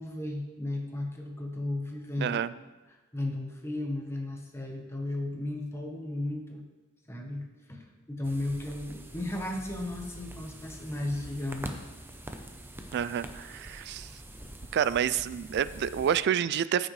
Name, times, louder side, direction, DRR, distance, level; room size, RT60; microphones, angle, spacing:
voice 1, 0.0-2.4 2.9-6.6 7.1-11.8, left 1 dB, 10° left, 2 dB, 1.0 m, -35 dB
voice 2, 2.2-2.5 12.9-14.1 14.7-16.9, right 8 dB, 50° right, 17 dB, 0.3 m, -28 dB
sound 1, 8.2-16.2, right 1 dB, 10° right, 0.6 m, -44 dB
14.0 x 6.4 x 3.2 m, 1.2 s
head